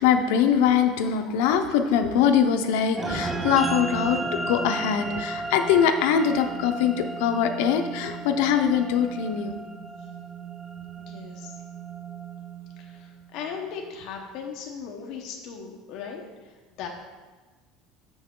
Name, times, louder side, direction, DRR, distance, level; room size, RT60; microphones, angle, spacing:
voice 1, 0.0-9.6, left 8 dB, 80° left, 6 dB, 0.6 m, -22 dB
sound 1, 3.0-13.6, right 3 dB, 15° right, 0.4 m, -34 dB
voice 2, 11.1-11.5 12.8-16.5 16.8-16.9, left 6 dB, 55° left, 0 dB, 0.9 m, -38 dB
6.8 x 6.1 x 3.7 m, 1.3 s
cardioid pair, 160°, 0 cm